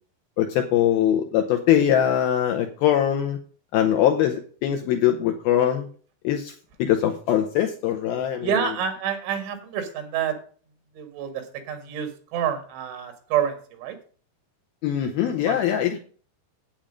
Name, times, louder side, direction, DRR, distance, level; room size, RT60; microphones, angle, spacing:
voice 1, 0.4-3.4 3.7-5.9 6.2-6.5 6.8-8.5 14.8-16.0, left 10 dB, 80° left, 5 dB, 2.2 m, -22 dB
voice 2, 8.4-10.4 10.9-14.0 15.4-15.6, right 8 dB, 85° right, 7 dB, 4.3 m, -28 dB
9.0 x 8.7 x 5.1 m, 0.42 s
omnidirectional pair, 5.2 m